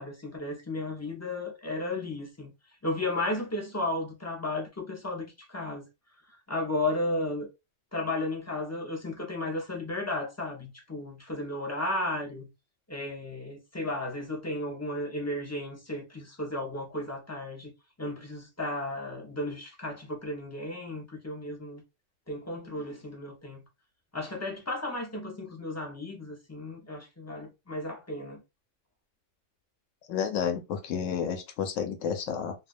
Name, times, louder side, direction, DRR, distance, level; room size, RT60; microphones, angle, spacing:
voice 1, 0.0-2.5 2.8-5.9 6.5-7.5 7.9-12.5 12.9-17.7 18.0-21.8 22.3-23.6 24.1-28.4, left 2 dB, 25° left, 0.4 m, -34 dB
voice 2, 30.1-32.5, left 7 dB, 85° left, 1.0 m, -31 dB
2.3 x 2.2 x 2.4 m
omnidirectional pair, 1.3 m